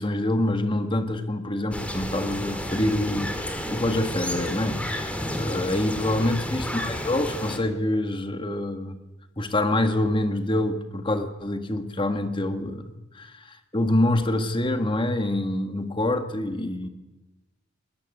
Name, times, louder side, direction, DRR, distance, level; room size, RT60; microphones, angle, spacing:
voice 1, 0.0-9.0 9.4-16.9, left 1 dB, 25° left, 8 dB, 1.8 m, -26 dB
sound 1, 1.7-7.6, equal, 5° left, 2.7 m, -31 dB
21.0 x 18.5 x 9.3 m, 1.0 s
head